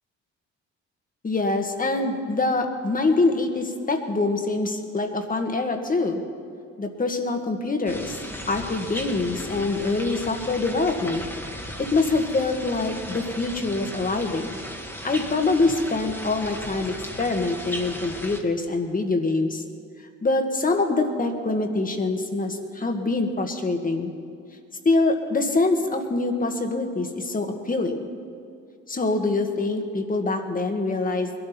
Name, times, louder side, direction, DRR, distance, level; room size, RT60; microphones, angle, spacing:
voice 1, 1.2-6.2 6.8-8.2 8.5-11.2 11.8-14.6 15.0-19.6 20.2-24.1 24.9-28.1 28.9-31.3, left 3 dB, 30° left, 5 dB, 1.7 m, -24 dB
sound 1, 7.9-18.4, equal, 5° left, 1.8 m, -36 dB
21.0 x 12.5 x 4.4 m, 2.5 s
cardioid pair, 90°, 30 cm